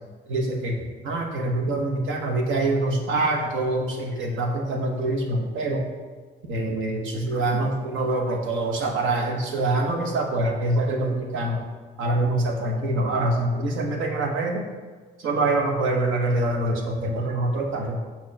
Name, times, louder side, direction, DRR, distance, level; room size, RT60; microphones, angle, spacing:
voice 1, 0.3-0.8 1.0-5.8 6.5-11.6 12.0-14.6 15.2-18.0, right 2 dB, 80° right, 2 dB, 1.1 m, -25 dB
6.3 x 2.9 x 5.7 m, 1.4 s
cardioid pair, 90°, 20 cm